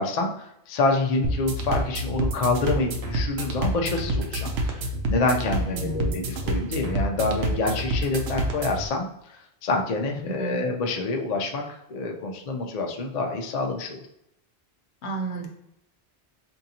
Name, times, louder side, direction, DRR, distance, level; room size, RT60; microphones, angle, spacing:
voice 1, 0.0-4.8 5.1-9.4 9.6-14.0, left 3 dB, 50° left, 2 dB, 0.5 m, -27 dB
sound 1, 1.2-8.9, right 1 dB, 70° right, 0.9 m, -28 dB
voice 2, 5.6-6.1 10.2-10.6 15.0-15.5, right 3 dB, 80° left, 2 dB, 1.0 m, -32 dB
4.5 x 2.5 x 2.8 m, 0.79 s
omnidirectional pair, 1.1 m